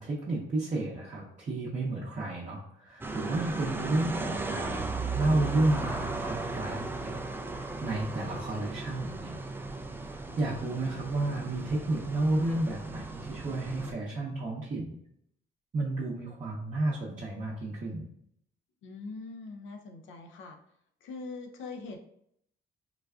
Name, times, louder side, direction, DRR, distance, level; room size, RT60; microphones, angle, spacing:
voice 1, 0.0-9.3 10.1-15.0 15.7-18.1, right 2 dB, 40° right, -6 dB, 0.7 m, -32 dB
sound 1, 3.0-13.9, right 3 dB, 10° right, 0.3 m, -36 dB
voice 2, 18.8-20.6 21.0-22.0, left 3 dB, 80° left, 5 dB, 0.5 m, -42 dB
3.9 x 2.2 x 2.3 m, 0.71 s
cardioid pair, 90°, 20 cm